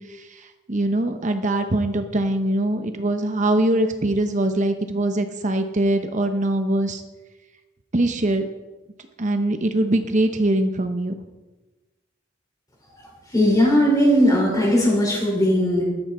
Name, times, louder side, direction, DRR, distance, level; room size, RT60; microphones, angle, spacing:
voice 1, 0.0-7.0 7.9-8.5 9.2-11.1, right 1 dB, 40° right, 7 dB, 0.9 m, -22 dB
voice 2, 13.3-15.8, equal, 20° left, -3 dB, 5.1 m, -18 dB
14.5 x 12.0 x 4.4 m, 1.1 s
head